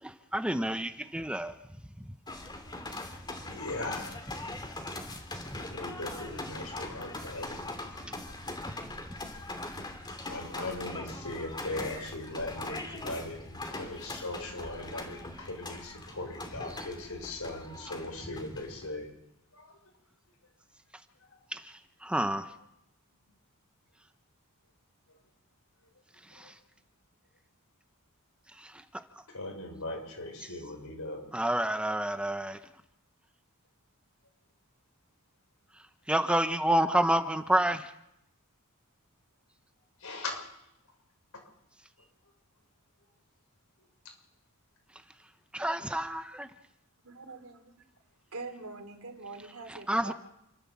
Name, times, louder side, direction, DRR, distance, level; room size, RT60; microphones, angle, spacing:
voice 1, 0.0-1.5 5.3-5.6 8.6-8.7 21.5-22.5 26.2-26.6 28.5-28.8 31.3-32.6 35.7-37.9 45.5-46.5 49.7-50.1, right 1 dB, 5° right, 0.9 m, -29 dB
sound 1, 2.3-19.0, left 2 dB, 20° left, 2.7 m, -41 dB
voice 2, 3.5-4.3 5.4-7.7 8.8-8.9 10.3-19.1 19.5-19.8 21.3-21.4 25.1-25.2 26.3-26.5 29.3-31.2 40.0-40.6 41.3-41.4 43.8-43.9, left 2 dB, 85° left, 6.7 m, -39 dB
voice 3, 47.0-47.6 48.3-50.1, right 3 dB, 80° right, 3.0 m, -43 dB
29.0 x 13.0 x 7.3 m
head